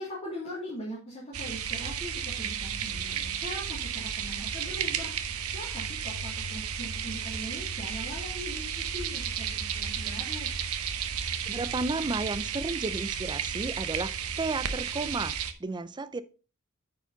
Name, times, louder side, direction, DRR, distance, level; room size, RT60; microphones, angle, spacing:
voice 1, 0.0-5.1 5.5-10.5, equal, 30° left, -7 dB, 2.6 m, -41 dB
sound 1, 1.3-15.5, right 7 dB, 90° right, 0.8 m, -33 dB
voice 2, 11.4-16.2, right 3 dB, 20° right, 14 dB, 0.4 m, -33 dB
9.0 x 4.9 x 3.9 m, 0.35 s
head